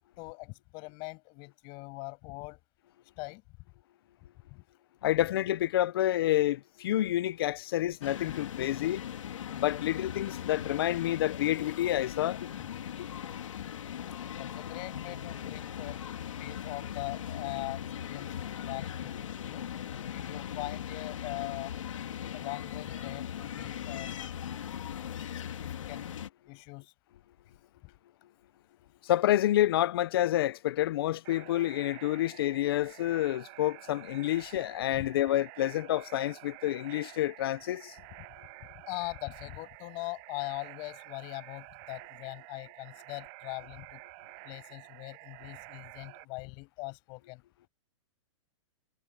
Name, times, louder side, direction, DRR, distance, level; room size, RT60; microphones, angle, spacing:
voice 1, 0.2-2.6 3.2-3.4 4.5-4.6 14.4-16.0 16.4-19.1 19.4-19.7 20.1-21.7 22.3-24.3 25.1-26.1 26.5-26.9 27.8-27.9 34.9-35.1 38.9-44.0 44.4-47.4, left 29 dB, 30° left, 7.6 m, -41 dB
voice 2, 5.0-9.0 9.6-12.4 13.0-13.1 29.0-38.0, left 13 dB, 50° left, 0.7 m, -28 dB
sound 1, 8.0-26.3, left 9 dB, 90° left, 2.9 m, -39 dB
sound 2, 31.2-46.3, right 39 dB, 30° right, 7.3 m, -50 dB
hypercardioid pair, 170°, 16 cm